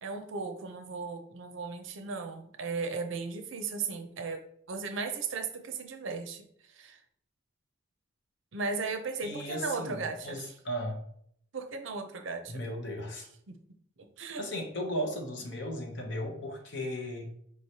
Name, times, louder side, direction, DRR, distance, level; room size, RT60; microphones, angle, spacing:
voice 1, 0.0-7.0 8.5-10.5 11.5-12.6 13.5-13.6 14.0-14.5, right 4 dB, 70° right, 6 dB, 0.6 m, -36 dB
voice 2, 9.2-11.0 12.5-13.3 14.4-17.3, equal, 60° left, 2 dB, 0.8 m, -36 dB
4.7 x 3.2 x 2.8 m, 0.67 s
head